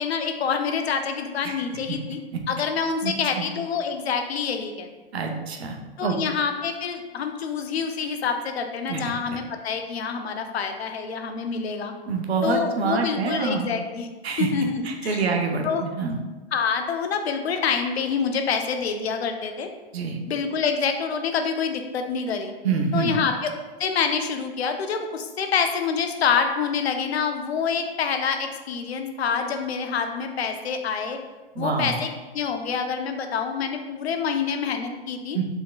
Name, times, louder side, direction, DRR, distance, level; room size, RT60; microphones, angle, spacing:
voice 1, 0.0-2.2 2.5-4.9 6.0-11.9 12.4-14.1 14.4-15.2 15.6-15.8 16.1-16.2 16.5-19.7 20.3-22.5 22.9-23.5 23.8-31.2 31.6-35.4, left 6 dB, 85° left, 6 dB, 0.7 m, -26 dB
voice 2, 3.0-3.4 5.1-5.8 6.0-6.2 8.9-9.4 12.1-13.7 14.2-14.5 14.8-16.2 19.9-20.2 22.6-23.2 31.5-32.0 35.3-35.4, right 5 dB, 90° right, 3 dB, 0.7 m, -26 dB
5.4 x 3.5 x 2.3 m, 1.2 s
hypercardioid pair, 115°, 31 cm